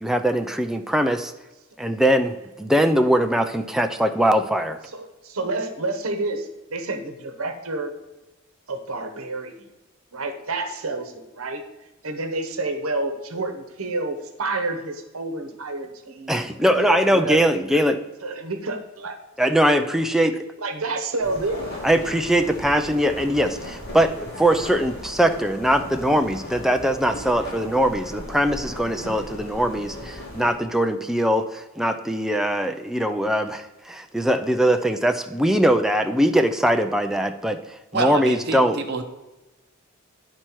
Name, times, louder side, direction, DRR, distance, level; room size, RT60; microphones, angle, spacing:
voice 1, 0.0-1.3 1.8-4.8 16.3-18.0 19.4-20.4 21.8-37.6 37.9-38.8, equal, ahead, 6 dB, 0.4 m, -21 dB
voice 2, 4.9-8.0 8.7-9.7 10.1-11.6 12.0-16.5 16.7-17.5 18.2-19.2 20.6-21.6, right 2 dB, 85° right, 6 dB, 1.0 m, -29 dB
sound 1, 21.2-30.5, left 1 dB, 50° left, 2.5 m, -37 dB
voice 3, 37.9-39.0, right 3 dB, 50° right, 4 dB, 0.8 m, -26 dB
10.5 x 4.4 x 4.5 m, 1.1 s
head